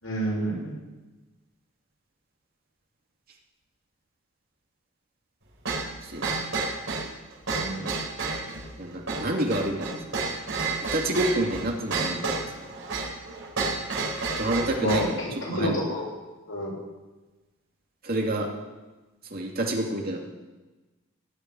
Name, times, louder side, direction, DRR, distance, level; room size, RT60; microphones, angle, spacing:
voice 1, 0.0-0.8 7.5-8.0 14.8-16.1 16.5-16.7, equal, 85° left, -3 dB, 6.8 m, -29 dB
sound 1, 5.7-15.1, right 4 dB, 75° right, 4.7 m, -30 dB
voice 2, 8.8-10.1 10.9-12.5 14.4-15.2 15.5-15.8 18.0-18.5 19.3-20.2, right 1 dB, 50° right, 0 dB, 2.6 m, -28 dB
18.0 x 7.0 x 9.8 m, 1.2 s
head